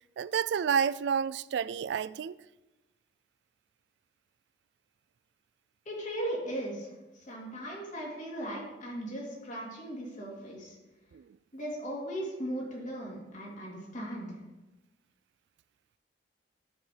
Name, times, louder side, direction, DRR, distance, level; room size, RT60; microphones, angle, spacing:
voice 1, 0.2-2.4 11.1-11.4, right 7 dB, 70° right, 0.3 m, -30 dB
voice 2, 5.8-10.8 11.5-14.4, right 1 dB, 45° left, 2.9 m, -38 dB
12.5 x 5.2 x 5.0 m
head